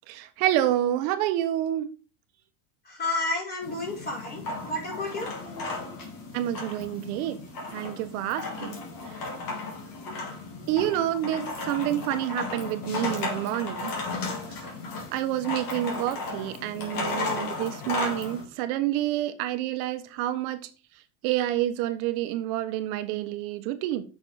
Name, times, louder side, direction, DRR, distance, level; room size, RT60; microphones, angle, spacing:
voice 1, 0.1-1.9 6.3-7.4 7.7-8.8 10.7-13.9 14.5-14.7 15.1-20.7 21.2-24.1, right 13 dB, 65° right, 1.3 m, -28 dB
voice 2, 2.9-5.3, left 2 dB, 20° left, 5.3 m, -31 dB
sound 1, 3.6-18.5, left 3 dB, 45° left, 3.6 m, -35 dB
8.7 x 6.4 x 5.0 m
cardioid pair, 155°, 46 cm